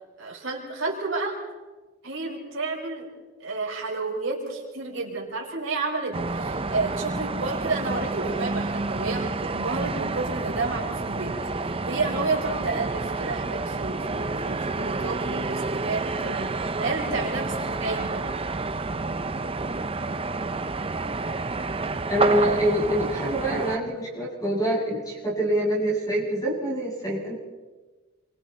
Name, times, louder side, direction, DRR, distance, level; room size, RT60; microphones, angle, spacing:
voice 1, 0.2-1.4 2.0-3.1 3.4-11.4 11.9-18.3, right 3 dB, 60° right, -2 dB, 5.8 m, -31 dB
sound 1, 6.1-23.8, right 3 dB, 25° right, 0.7 m, -29 dB
voice 2, 22.1-27.3, right 1 dB, 15° left, -4 dB, 7.6 m, -25 dB
29.0 x 25.0 x 4.3 m, 1.3 s
head